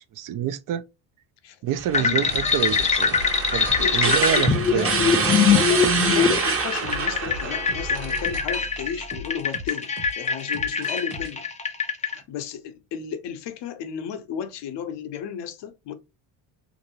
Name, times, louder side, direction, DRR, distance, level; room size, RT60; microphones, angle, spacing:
voice 1, 0.2-0.8 1.6-3.2 3.5-4.9, right 10 dB, 45° right, 0.4 m, -27 dB
sound 1, 1.8-8.3, right 5 dB, 25° right, 0.8 m, -27 dB
voice 2, 1.9-2.4 3.8-5.0 5.4-11.5 12.0-15.9, left 8 dB, 60° left, 0.7 m, -34 dB
sound 2, 1.9-12.1, left 6 dB, 15° left, 0.4 m, -23 dB
sound 3, 2.2-11.3, right 2 dB, 85° right, 1.0 m, -38 dB
2.6 x 2.6 x 2.9 m
supercardioid pair, 70°, 50 cm